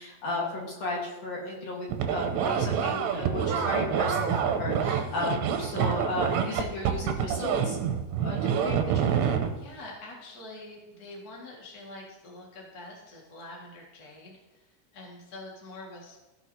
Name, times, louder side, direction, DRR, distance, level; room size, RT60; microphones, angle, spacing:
voice 1, 0.0-7.8 8.2-9.4, left 2 dB, 55° left, -3 dB, 1.9 m, -34 dB
sound 1, 1.9-9.6, right 8 dB, 85° right, 2.9 m, -27 dB
voice 2, 9.5-16.2, left 2 dB, 85° left, -2 dB, 0.8 m, -45 dB
15.5 x 6.3 x 2.8 m, 1.0 s
omnidirectional pair, 5.0 m